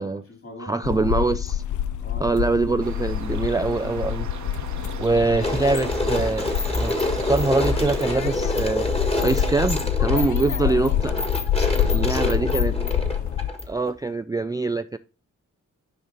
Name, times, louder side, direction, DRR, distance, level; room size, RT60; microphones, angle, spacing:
voice 1, 0.0-1.2 2.0-2.8 5.3-5.6 10.4-11.3 11.7-13.5, left 2 dB, 45° left, 3.5 m, -42 dB
voice 2, 0.6-1.6 2.2-4.3 5.0-8.9 9.2-11.1 11.8-12.7 13.7-15.0, right 3 dB, 10° right, 0.3 m, -24 dB
sound 1, 0.8-13.5, left 10 dB, 70° left, 0.5 m, -27 dB
sound 2, 2.8-8.2, right 6 dB, 65° right, 1.0 m, -39 dB
sound 3, 5.4-13.9, left 1 dB, 20° left, 1.6 m, -27 dB
6.3 x 4.9 x 4.0 m
cardioid pair, 55°, 31 cm